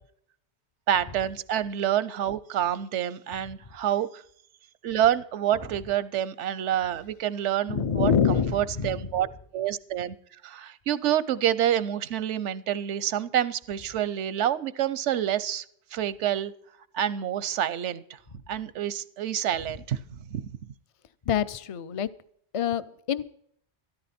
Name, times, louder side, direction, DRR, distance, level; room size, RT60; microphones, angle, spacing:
voice 1, 0.9-4.2 4.8-9.3 9.5-10.2 10.4-15.6 15.9-16.5 16.9-18.0 18.5-20.4, right 10 dB, 90° right, 17 dB, 1.0 m, -27 dB
voice 2, 7.7-8.9 21.3-22.1 22.5-23.2, left 7 dB, 45° left, 15 dB, 0.5 m, -25 dB
13.5 x 13.0 x 4.3 m, 0.66 s
omnidirectional pair, 1.2 m